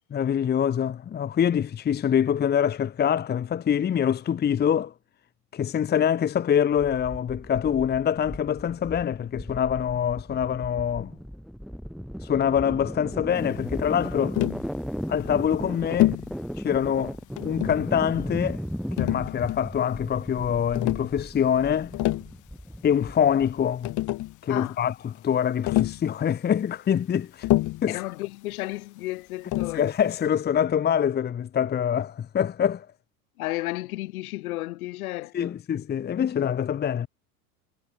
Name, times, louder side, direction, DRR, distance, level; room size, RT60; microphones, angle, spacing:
voice 1, 0.1-4.9 5.5-11.1 12.2-14.4 15.1-16.1 16.6-17.2 17.4-18.6 19.0-21.9 22.8-23.9 24.4-27.5 27.8-28.0 29.7-32.9 35.3-37.1, left 8 dB, 20° left, 1.1 m, -25 dB
sound 1, 7.3-23.8, equal, ahead, 2.5 m, -36 dB
Tap, 14.3-14.7 16.0-16.3 17.4-17.9 19.0-19.7 20.7-21.1 21.8-22.3 23.5-23.6 23.8-24.4 25.7-26.1 27.4-27.9 29.5-29.8, left 17 dB, 40° left, 1.7 m, -26 dB
voice 2, 24.5-24.8 27.9-29.9 33.4-35.6, left 18 dB, 65° left, 4.8 m, -33 dB
hypercardioid pair, 100°, 46 cm